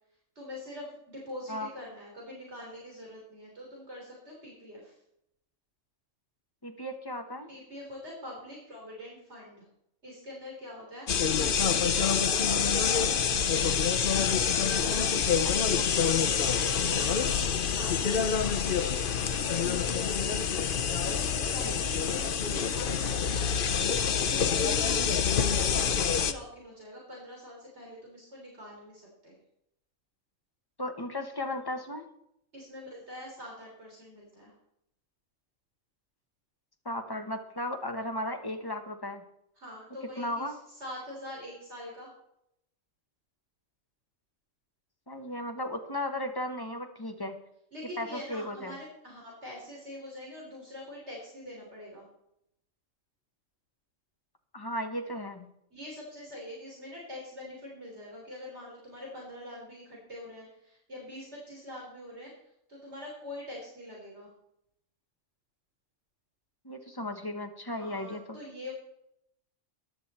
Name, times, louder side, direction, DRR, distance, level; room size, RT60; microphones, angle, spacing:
voice 1, 0.4-5.0 7.5-9.6 10.0-11.1 11.3-12.1 12.5-13.8 14.7-19.5 20.8-29.4 32.5-34.5 39.6-42.1 47.7-52.1 55.7-62.3 62.7-64.3 67.8-68.7, left 1 dB, 60° right, -2 dB, 4.0 m, -44 dB
voice 2, 6.6-7.5 21.6-21.8 30.8-32.1 36.8-39.2 40.2-40.5 45.1-47.4 48.0-48.8 54.5-55.5 66.6-68.4, left 1 dB, 20° left, 5 dB, 1.3 m, -35 dB
sound 1, 11.1-26.3, left 7 dB, 50° left, 0.9 m, -26 dB
14.5 x 10.5 x 4.3 m, 0.77 s
omnidirectional pair, 1.3 m